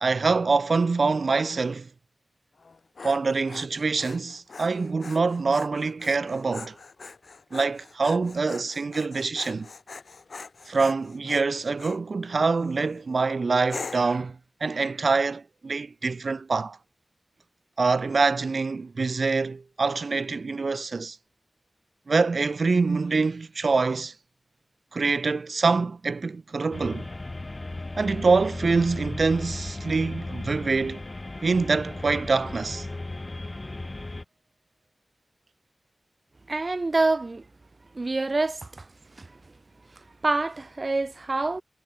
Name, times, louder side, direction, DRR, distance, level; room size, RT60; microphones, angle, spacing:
voice 1, 0.0-1.9 3.0-6.7 7.5-9.7 10.7-16.8 17.8-21.2 22.1-24.1 24.9-27.1 28.0-31.0 31.4-32.9, right 4 dB, 70° right, 0.4 m, -25 dB
Dog, 2.6-12.0 12.6-13.0 13.7-14.2, left 4 dB, 75° left, 4.5 m, -42 dB
sound 1, 26.7-34.2, left 2 dB, 40° left, 0.6 m, -36 dB
voice 2, 36.5-37.4 37.9-38.8 39.2-39.3 40.2-41.6, right 3 dB, 50° right, 1.0 m, -26 dB
wide cardioid pair, 55°, 0 cm